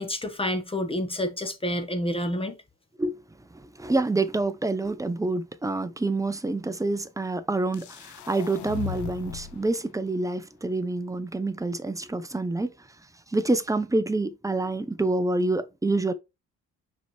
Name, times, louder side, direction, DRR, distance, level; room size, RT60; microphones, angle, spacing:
voice 1, 0.0-2.6, left 1 dB, 20° left, 1.3 m, -29 dB
voice 2, 3.5-12.7 13.3-16.1, right 2 dB, 10° right, 0.8 m, -27 dB
sound 1, 7.7-9.7, left 14 dB, 75° left, 0.8 m, -37 dB
5.6 x 4.7 x 4.3 m
cardioid pair, 90°, 30 cm